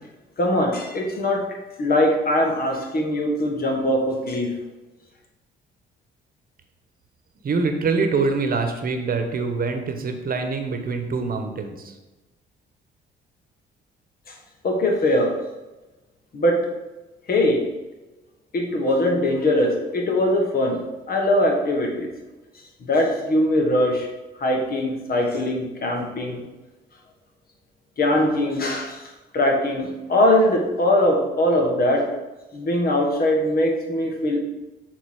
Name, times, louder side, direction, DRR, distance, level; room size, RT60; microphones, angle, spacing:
voice 1, 0.4-4.6 14.6-15.4 16.3-16.7 17.3-17.6 18.5-22.1 22.8-24.1 24.4-26.4 28.0-29.1 29.3-32.1 32.5-34.4, left 1 dB, 50° left, 1 dB, 1.6 m, -21 dB
voice 2, 7.4-11.9, right 4 dB, 45° right, 5 dB, 1.1 m, -24 dB
6.5 x 4.0 x 4.8 m, 1.1 s
cardioid pair, 90°, 20 cm